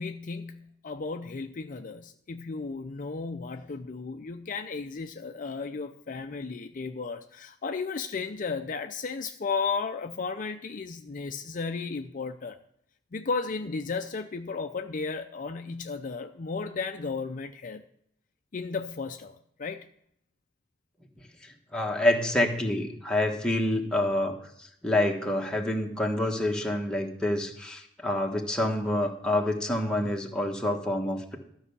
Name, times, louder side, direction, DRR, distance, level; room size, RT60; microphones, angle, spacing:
voice 1, 0.0-12.6 13.1-17.8 18.5-19.9, left 4 dB, 45° left, 7 dB, 0.5 m, -34 dB
voice 2, 21.4-31.4, left 1 dB, 5° left, 0 dB, 1.2 m, -27 dB
12.5 x 5.5 x 6.8 m, 0.70 s
head